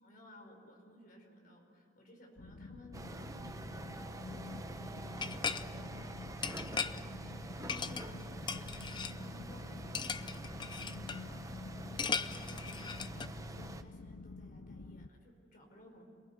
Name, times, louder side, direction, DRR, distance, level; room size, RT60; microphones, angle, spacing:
voice 1, 0.0-16.0, left 1 dB, 45° left, 2 dB, 5.1 m, -58 dB
sound 1, 2.4-15.1, left 3 dB, 75° left, 0.7 m, -49 dB
sound 2, 2.9-13.8, right 1 dB, 15° right, 0.8 m, -46 dB
sound 3, 5.2-5.6 6.4-7.0 7.7-8.2 8.5-9.1 9.9-11.2 12.0-13.3, left 6 dB, 25° left, 0.5 m, -38 dB
26.5 x 19.5 x 9.6 m, 2.3 s
head